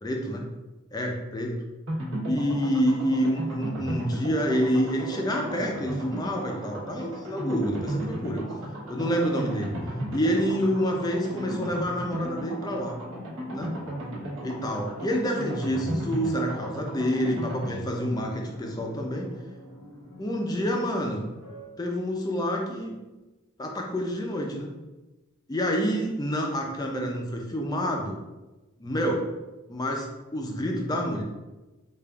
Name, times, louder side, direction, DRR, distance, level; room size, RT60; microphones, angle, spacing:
voice 1, 0.0-0.5 0.9-1.6 2.3-8.4 8.9-9.7 10.1-13.0 13.5-13.7 14.4-19.3 20.2-21.3 21.8-23.0 23.6-24.7 25.5-28.2 28.8-29.2 29.7-30.1 30.3-31.2, equal, 20° left, 1 dB, 0.5 m, -28 dB
sound 1, 1.9-20.5 20.8-20.9 21.1-21.2, equal, 70° right, 1.1 m, -35 dB
sound 2, 4.2-21.7, right 1 dB, 70° left, 0.7 m, -48 dB
5.0 x 2.4 x 2.3 m, 1.1 s
head